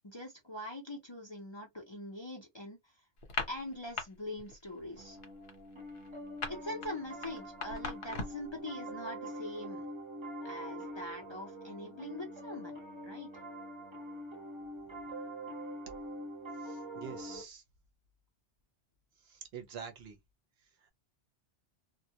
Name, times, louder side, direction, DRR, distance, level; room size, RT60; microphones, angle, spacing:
voice 1, 0.0-2.8 3.5-5.2 6.5-9.9 10.4-12.8 13.0-13.3, left 1 dB, 30° left, 0.5 m, -43 dB
sound 1, 3.2-4.1 4.4-4.7 5.0-8.5, left 4 dB, 65° left, 1.0 m, -39 dB
Piano, 5.0-17.4, right 1 dB, 30° right, 0.7 m, -44 dB
voice 2, 16.6-17.6 19.3-20.2, right 7 dB, 65° right, 0.8 m, -46 dB
2.2 x 2.1 x 2.7 m
omnidirectional pair, 1.2 m